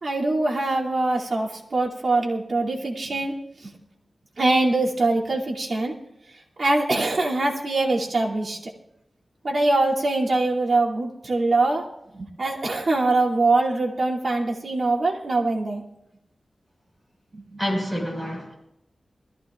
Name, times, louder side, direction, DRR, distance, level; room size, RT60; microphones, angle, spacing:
voice 1, 0.0-3.3 3.6-3.7 4.4-5.9 6.6-8.7 9.4-11.8 12.1-15.8 17.3-17.6, right 2 dB, 55° right, -3 dB, 2.6 m, -23 dB
voice 2, 17.6-18.5, equal, ahead, -1 dB, 5.1 m, -27 dB
21.5 x 14.5 x 2.4 m, 0.83 s
wide cardioid pair, 110°, 0 cm